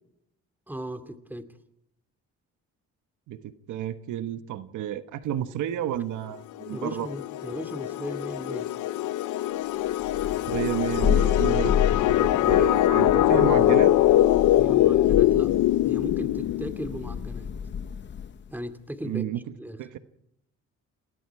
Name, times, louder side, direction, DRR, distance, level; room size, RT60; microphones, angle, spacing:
voice 1, 0.7-1.5 6.7-8.7 14.5-15.5 15.8-17.5 18.5-19.3 19.6-19.8, equal, 5° right, 8 dB, 2.4 m, -37 dB
voice 2, 3.3-7.1 10.5-11.7 12.1-13.9 19.0-19.4 19.8-20.0, right 11 dB, 80° right, 11 dB, 1.2 m, -31 dB
sound 1, 6.6-17.1, left 14 dB, 80° left, 0.7 m, -22 dB
Thunder, 10.0-18.5, left 8 dB, 40° left, 0.8 m, -30 dB
28.0 x 19.5 x 4.8 m, 0.77 s
cardioid pair, 90°, 30 cm